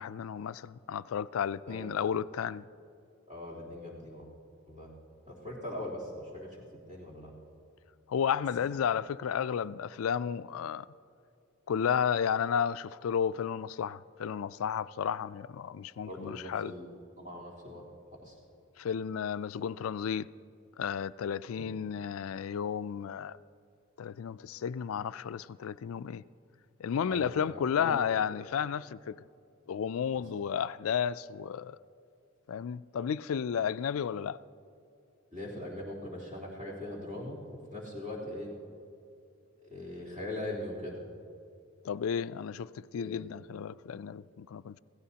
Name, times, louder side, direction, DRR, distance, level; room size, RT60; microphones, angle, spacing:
voice 1, 0.0-2.6 8.1-10.9 11.7-16.7 18.8-20.3 20.8-23.4 24.0-26.2 26.8-29.2 29.7-31.8 32.5-34.4 41.8-44.8, left 7 dB, 85° left, 0.4 m, -32 dB
voice 2, 1.7-2.1 3.3-4.3 4.7-4.9 5.3-6.6 6.9-7.3 8.6-8.7 16.1-17.8 18.2-18.3 21.6-21.7 27.1-28.0 30.1-30.2 35.3-38.5 39.6-41.0 42.9-43.3, left 1 dB, 35° right, 3.4 m, -41 dB
28.0 x 16.5 x 2.9 m
head